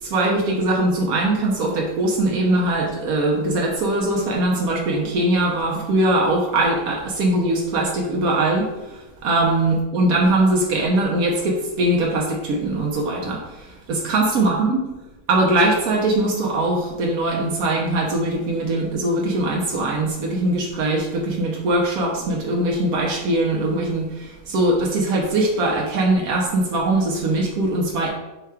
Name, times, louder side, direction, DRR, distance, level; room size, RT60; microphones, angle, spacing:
voice 1, 0.0-14.8 15.3-28.1, right 2 dB, 85° right, -2 dB, 1.2 m, -21 dB
4.7 x 2.2 x 4.7 m, 1.1 s
omnidirectional pair, 1.5 m